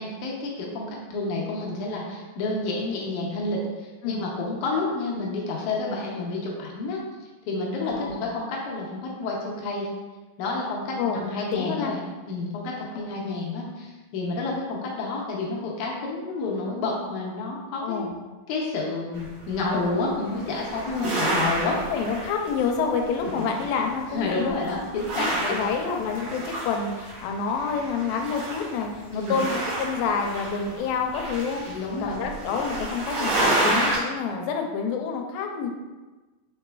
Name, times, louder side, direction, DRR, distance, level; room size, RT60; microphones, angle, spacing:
voice 1, 0.0-7.0 7.5-9.9 10.4-18.1 18.5-21.8 23.4-23.5 24.1-25.6 29.1-29.4 31.7-32.2, left 3 dB, 75° left, -3 dB, 1.9 m, -30 dB
voice 2, 7.8-8.3 11.0-11.2 11.5-11.9 13.0-13.3 17.8-18.1 20.9-21.2 21.9-24.6 25.5-35.7, left 5 dB, 90° left, 3 dB, 2.3 m, -28 dB
sound 1, 19.1-19.9 20.3-22.8 23.0-24.1 24.4-34.0, right 1 dB, 60° right, 2.0 m, -30 dB
5.9 x 4.0 x 2.3 m, 1.2 s
omnidirectional pair, 4.0 m